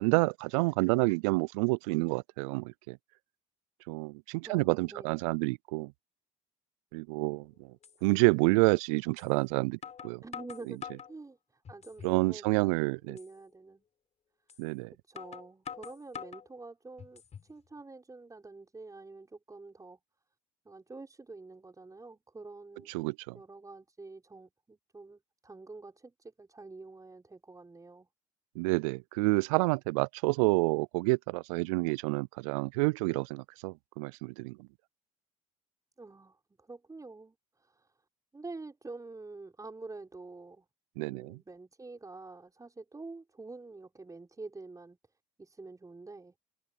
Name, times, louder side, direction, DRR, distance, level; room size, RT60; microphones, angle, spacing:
voice 1, 0.0-3.0 3.9-5.9 6.9-7.7 8.0-10.2 12.0-13.2 14.6-14.9 22.9-23.4 28.6-34.7 41.0-41.4, right 27 dB, 80° right, 0.4 m, -29 dB
voice 2, 4.4-5.2 10.2-10.8 11.1-12.5 13.0-13.8 14.9-20.0 20.6-22.9 23.3-28.1 36.0-37.9 38.3-40.7 41.0-45.0 45.4-46.3, right 3 dB, 20° right, 6.4 m, -47 dB
sound 1, 7.2-7.3 7.8-8.0 9.2-9.3 9.8-11.1 11.7-12.2 12.6-12.7 13.2-13.3 14.5-14.6 15.2-16.5 17.0-17.5, left 7 dB, 40° left, 5.4 m, -45 dB
hypercardioid pair, 65°, 17 cm